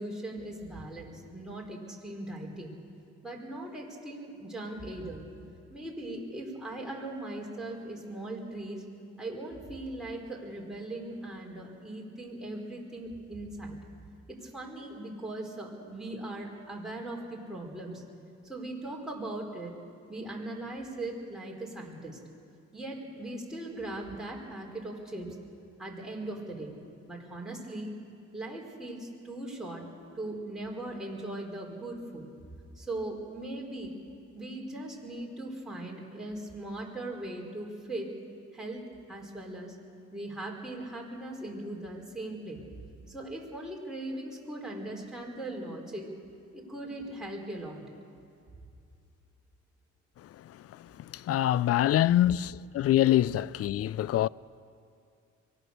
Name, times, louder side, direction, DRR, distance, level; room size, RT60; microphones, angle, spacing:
voice 1, 0.0-2.7 3.2-5.2 5.7-8.8 9.2-13.8 14.3-18.0 18.4-19.7 20.1-22.2 22.7-25.4 25.8-26.7 27.1-27.9 28.3-29.8 30.1-32.3 32.7-33.9 34.3-38.1 38.5-38.8 39.1-39.7 40.1-42.6 43.1-46.1 46.5-47.8, right 1 dB, ahead, 4.7 m, -39 dB
voice 2, 50.2-54.3, left 13 dB, 50° left, 0.4 m, -26 dB
23.5 x 17.5 x 6.8 m
cardioid pair, 90°, 30 cm